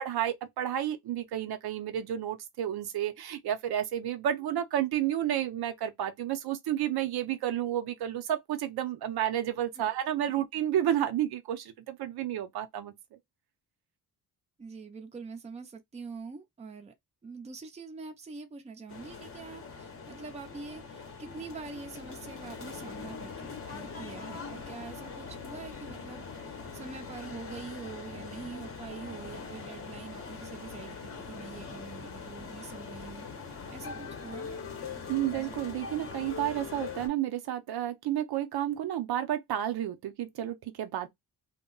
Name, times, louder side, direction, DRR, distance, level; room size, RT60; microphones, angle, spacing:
voice 1, 0.0-12.9 35.1-41.1, right 11 dB, 80° right, 0.6 m, -31 dB
voice 2, 14.6-16.9 17.2-33.3 33.7-34.7 35.3-35.6, right 4 dB, 20° right, 0.5 m, -45 dB
sound 1, 18.9-37.1, left 5 dB, 35° left, 0.7 m, -42 dB
2.2 x 2.1 x 3.7 m
wide cardioid pair, 150°, 37 cm